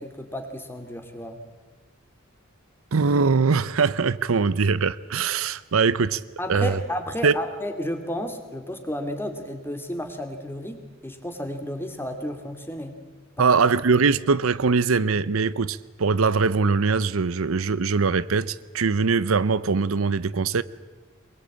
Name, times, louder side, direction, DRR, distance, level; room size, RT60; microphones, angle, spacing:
voice 1, 0.0-1.4 6.4-13.0 13.4-13.5, equal, 10° left, 2.6 m, -32 dB
voice 2, 2.9-6.2 6.5-6.8 7.2-7.3 13.4-20.6, right 4 dB, 80° right, 0.7 m, -22 dB
23.5 x 22.0 x 8.7 m
head